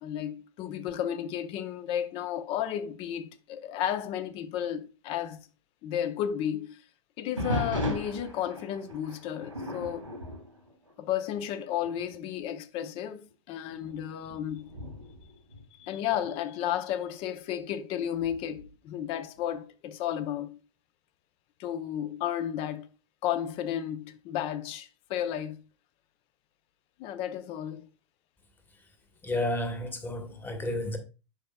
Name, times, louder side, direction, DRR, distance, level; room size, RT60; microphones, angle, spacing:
voice 1, 0.0-5.5 5.8-6.8 7.2-10.1 11.0-14.7 15.8-20.6 21.6-22.9 23.2-25.6 27.0-27.9, left 10 dB, 35° left, 0.7 m, -33 dB
sound 1, 7.4-11.5 11.8-12.2 12.8-12.9 13.6-16.3 18.2-18.7, left 1 dB, 90° right, 2.0 m, -37 dB
voice 2, 29.2-31.0, left 1 dB, 15° left, 1.4 m, -31 dB
10.0 x 5.2 x 2.3 m
figure-of-eight pair, 95°, 16 cm